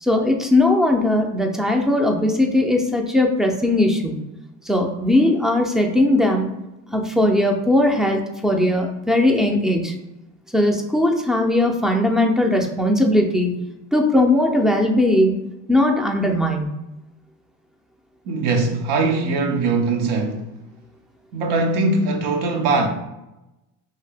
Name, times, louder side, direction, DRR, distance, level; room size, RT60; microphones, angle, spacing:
voice 1, 0.0-4.1 4.7-6.5 6.9-9.9 10.5-13.5 13.9-15.4 15.7-16.7, left 1 dB, ahead, 0.4 m, -19 dB
voice 2, 18.3-20.5 21.3-22.9, right 3 dB, 75° right, 0.7 m, -21 dB
2.8 x 2.7 x 3.3 m
supercardioid pair, 90°, 39 cm